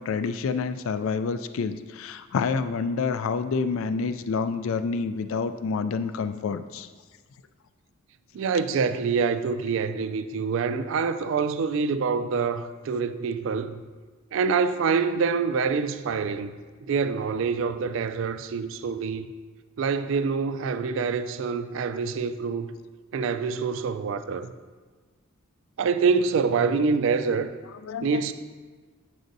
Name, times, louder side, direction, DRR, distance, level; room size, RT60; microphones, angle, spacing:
voice 1, 0.0-6.9 27.8-28.2, left 5 dB, 65° left, 0.3 m, -28 dB
voice 2, 8.3-13.8 14.3-16.5 16.9-19.3 19.8-22.7 23.1-24.5 25.8-27.5 28.0-28.3, right 5 dB, 60° right, 0.3 m, -26 dB
7.7 x 6.1 x 2.7 m
head